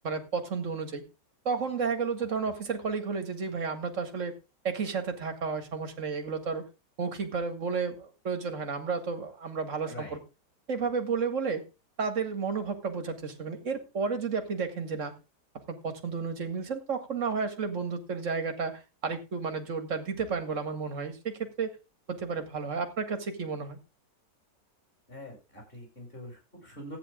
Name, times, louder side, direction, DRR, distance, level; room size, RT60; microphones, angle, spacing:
voice 1, 0.0-1.0 1.5-4.3 4.6-6.6 7.0-10.2 10.7-11.7 12.0-15.1 15.5-21.7 22.1-23.8, right 5 dB, 45° right, 7 dB, 2.1 m, -32 dB
voice 2, 25.1-27.0, left 1 dB, 30° left, 0 dB, 7.9 m, -44 dB
14.5 x 9.7 x 3.7 m, 0.28 s
omnidirectional pair, 2.0 m